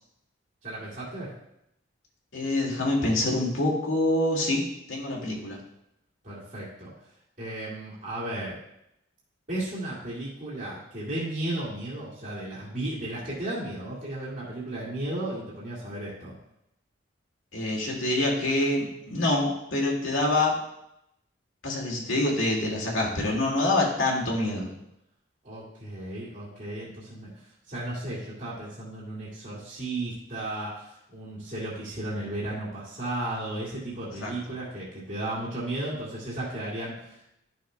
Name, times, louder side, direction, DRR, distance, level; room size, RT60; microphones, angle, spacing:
voice 1, 0.6-1.3 6.2-6.9 7.4-8.6 9.5-16.3 25.4-37.3, right 1 dB, 40° right, -10 dB, 2.1 m, -34 dB
voice 2, 2.3-5.6 17.5-20.6 21.6-24.7 34.2-34.4, left 2 dB, 85° left, -2 dB, 2.1 m, -26 dB
12.0 x 6.3 x 2.3 m, 0.80 s
head